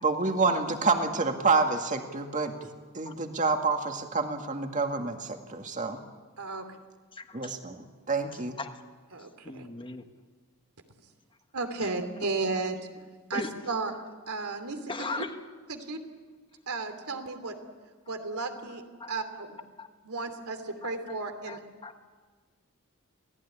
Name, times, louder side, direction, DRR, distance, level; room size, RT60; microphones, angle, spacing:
voice 1, 0.0-2.7 2.9-6.0 7.3-8.6, right 4 dB, 35° right, 5 dB, 2.1 m, -28 dB
voice 2, 7.1-7.6 8.6-8.8 9.4-10.0 11.8-11.9 13.3-13.7 14.9-15.4 19.0-19.1 19.8-19.9 20.8-21.2 21.5-22.1, left 3 dB, 25° left, 7 dB, 1.3 m, -38 dB
voice 3, 9.1-9.7 11.5-12.9 13.3-13.9 14.3-14.8 15.2-15.3 15.7-16.0 16.7-17.5 18.1-18.8 19.1-19.6 20.0-21.6, right 3 dB, 85° right, 7 dB, 3.0 m, -33 dB
28.0 x 17.5 x 9.9 m, 1.4 s
head